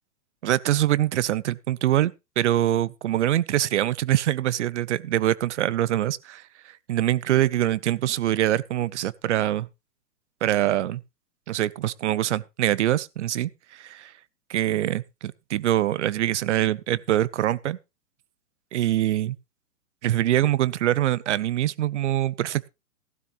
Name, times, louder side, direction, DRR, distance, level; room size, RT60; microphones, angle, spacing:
voice 1, 0.4-6.4 6.9-9.7 10.4-11.0 11.5-14.1 14.5-15.0 15.5-17.8 18.7-19.4 20.0-22.7, right 13 dB, 50° right, 0.6 m, -24 dB
15.5 x 12.0 x 2.5 m
hypercardioid pair, 160°, 47 cm